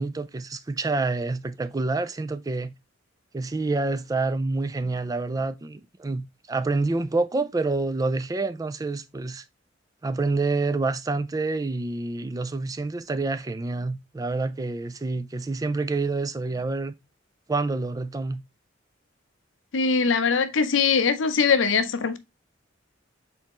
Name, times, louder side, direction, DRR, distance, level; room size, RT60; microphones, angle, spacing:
voice 1, 0.0-2.7 3.3-9.4 10.0-16.9 17.5-18.4, right 3 dB, 20° right, 0.3 m, -27 dB
voice 2, 19.7-22.2, left 5 dB, 80° left, 0.6 m, -22 dB
4.4 x 4.0 x 2.9 m
head